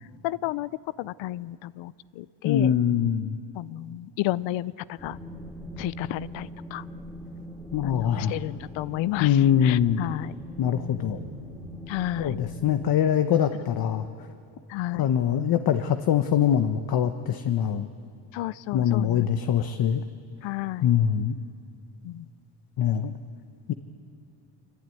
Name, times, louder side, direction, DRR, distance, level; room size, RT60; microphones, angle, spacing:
voice 1, 0.2-0.7 1.0-2.7 3.5-5.2 5.8-6.8 7.8-10.3 10.9-11.1 11.9-12.4 14.7-15.0 18.3-19.3 20.4-20.9 22.0-22.3, left 16 dB, 90° left, 19 dB, 0.7 m, -32 dB
voice 2, 2.4-3.4 7.7-8.4 9.2-10.0 10.6-11.2 12.2-14.1 15.0-17.9 18.7-20.0 20.8-21.3 22.8-23.1 23.7-23.8, left 9 dB, 55° left, 8 dB, 1.2 m, -23 dB
sound 1, 5.0-12.9, equal, ahead, 2.8 m, -41 dB
26.0 x 24.5 x 9.4 m, 2.7 s
cardioid pair, 120°, 44 cm